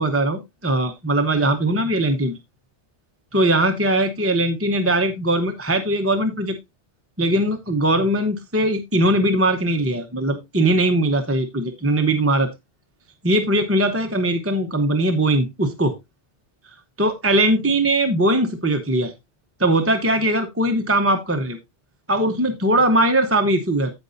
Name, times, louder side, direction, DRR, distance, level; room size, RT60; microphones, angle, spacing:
voice 1, 0.0-2.4 3.3-6.6 7.2-12.5 13.2-15.9 17.0-19.1 19.6-21.6 22.1-23.9, right 1 dB, 15° right, 0.7 m, -20 dB
15.0 x 5.3 x 2.6 m
omnidirectional pair, 1.2 m